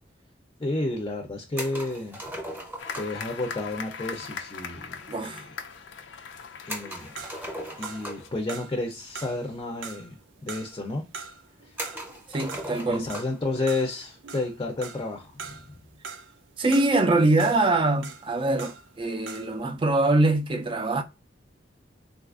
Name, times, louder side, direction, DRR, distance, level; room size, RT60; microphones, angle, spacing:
voice 1, 0.6-2.4 3.0-5.5 6.7-7.1 7.8-11.1 11.7-11.8 12.9-15.5, left 2 dB, 25° left, 0.5 m, -31 dB
sound 1, 1.6-3.3 6.7-8.4 9.5-9.6 9.8-9.9 10.7-10.8 11.8-13.4, equal, 10° right, 0.8 m, -38 dB
sound 2, 2.8-8.3, left 6 dB, 85° left, 0.5 m, -40 dB
voice 2, 5.1-5.4 12.3-13.1 16.6-21.0, right 2 dB, 30° right, 0.4 m, -23 dB
sound 3, 7.1-19.0 19.2-19.6, right 5 dB, 85° right, 0.5 m, -43 dB
3.8 x 2.4 x 2.4 m
head